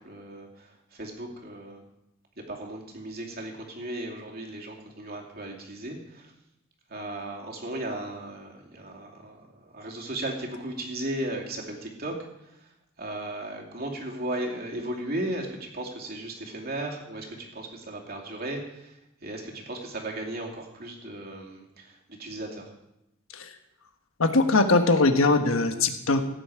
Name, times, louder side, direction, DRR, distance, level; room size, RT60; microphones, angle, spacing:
voice 1, 0.0-1.8 2.5-6.3 6.9-12.1 12.4-12.6 13.0-18.9 19.2-22.7, right 1 dB, 50° right, 0 dB, 2.7 m, -36 dB
voice 2, 24.2-26.2, left 3 dB, 90° left, 7 dB, 1.2 m, -21 dB
16.5 x 9.2 x 4.9 m, 0.88 s
head